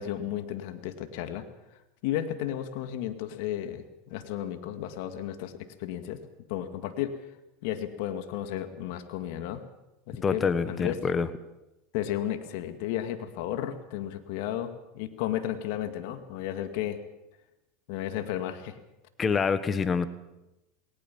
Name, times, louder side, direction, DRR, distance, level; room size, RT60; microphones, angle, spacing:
voice 1, 0.0-1.4 2.0-6.2 6.5-7.2 7.6-9.6 10.1-11.0 11.9-17.0 17.9-18.8, left 11 dB, 70° left, 9 dB, 2.0 m, -33 dB
voice 2, 10.2-11.3 19.2-20.1, left 5 dB, 25° left, 13 dB, 1.4 m, -26 dB
20.0 x 19.0 x 7.4 m, 0.95 s
hypercardioid pair, 100°, 0 cm